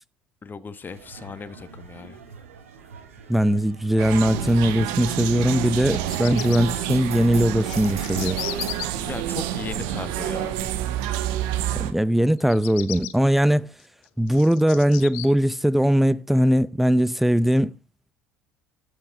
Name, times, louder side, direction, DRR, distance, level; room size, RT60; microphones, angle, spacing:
voice 1, 0.4-2.2 9.0-10.6, left 5 dB, 25° left, 1.1 m, -37 dB
sound 1, 0.8-8.9, right 4 dB, 80° right, 2.3 m, -37 dB
voice 2, 3.3-8.4 11.8-13.7 14.2-17.7, equal, 5° right, 0.6 m, -20 dB
sound 2, 4.0-11.9, right 12 dB, 65° right, 1.3 m, -28 dB
Bird vocalization bird call bird song, 5.8-6.6 7.4-8.8 12.4-13.1 13.8-15.3, left 18 dB, 65° left, 1.0 m, -35 dB
13.0 x 6.6 x 4.5 m
hypercardioid pair, 65°, 7 cm